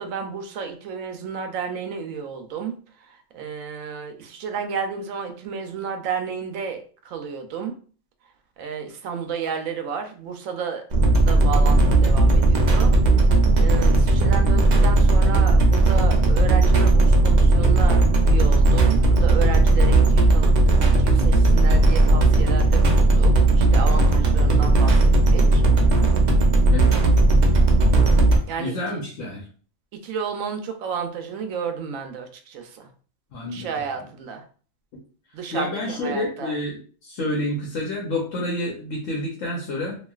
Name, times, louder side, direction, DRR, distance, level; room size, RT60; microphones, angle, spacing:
voice 1, 0.0-2.7 3.3-7.7 8.6-10.8 11.3-12.9 13.6-25.0 25.3-25.6 28.5-29.0 30.0-32.9 33.5-34.4 35.3-36.5, right 6 dB, 90° right, 5 dB, 1.0 m, -32 dB
sound 1, 10.9-28.4, right 2 dB, 60° right, 0.5 m, -16 dB
voice 2, 28.6-29.4 33.3-33.7 35.5-40.0, left 1 dB, 80° left, -2 dB, 1.1 m, -29 dB
3.0 x 2.4 x 2.3 m, 0.42 s
omnidirectional pair, 1.3 m